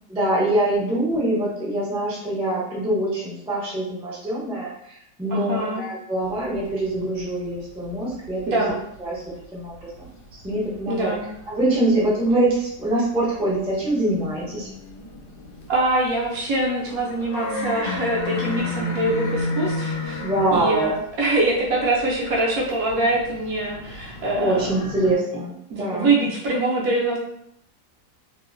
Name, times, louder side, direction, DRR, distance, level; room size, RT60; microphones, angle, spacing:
voice 1, 0.1-8.6 9.0-9.2 9.5-11.1 11.5-14.7 20.2-20.9 24.4-26.1, right 1 dB, 10° right, -8 dB, 0.3 m, -24 dB
voice 2, 5.3-5.8 8.5-8.8 10.9-11.3 15.7-20.2 20.5-24.8 25.7-27.2, right 2 dB, 70° right, -3 dB, 0.9 m, -24 dB
sound 1, 6.2-9.2 9.4-12.0 12.5-25.1, left 2 dB, 85° left, 1.2 m, -33 dB
2.9 x 2.0 x 2.4 m, 0.75 s
omnidirectional pair, 1.8 m